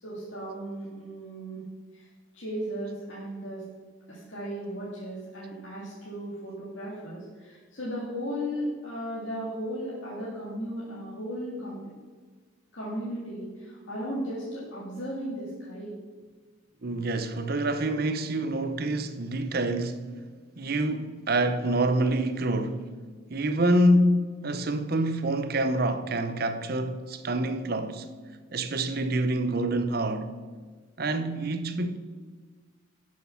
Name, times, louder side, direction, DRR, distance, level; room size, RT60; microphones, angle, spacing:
voice 1, 0.0-1.6 1.9-2.1 2.3-3.6 4.1-11.8 12.7-15.9, equal, 60° left, 2.2 m, -36 dB
voice 2, 16.8-20.1 20.6-22.9 23.3-28.1 28.5-30.3 31.0-32.0, right 1 dB, 45° right, 0.7 m, -26 dB
11.5 x 6.4 x 5.7 m
head